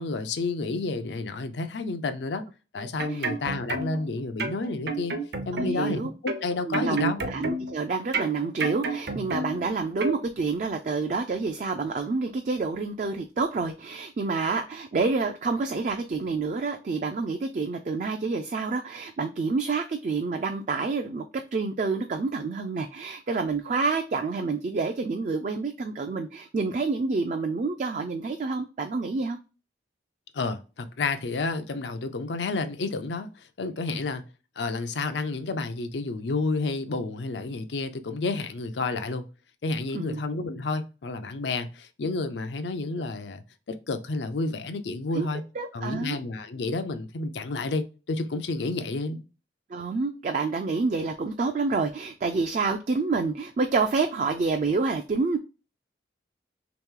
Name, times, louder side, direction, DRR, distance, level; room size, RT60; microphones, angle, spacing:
voice 1, 0.0-2.4 2.7-5.2 5.5-7.2 30.3-34.2 34.6-39.2 39.6-43.4 43.7-45.4 45.7-49.2, left 3 dB, 80° left, 0.5 m, -30 dB
sound 1, 2.8-4.1 4.4-5.9 6.3-7.8 8.1-9.7 10.0-10.2, right 2 dB, 65° right, 0.7 m, -31 dB
voice 2, 5.5-6.1 6.7-29.4 33.9-34.0 39.9-40.2 45.1-45.3 45.6-46.2 49.7-55.4, right 4 dB, 45° right, 0.3 m, -28 dB
3.1 x 2.9 x 3.6 m
head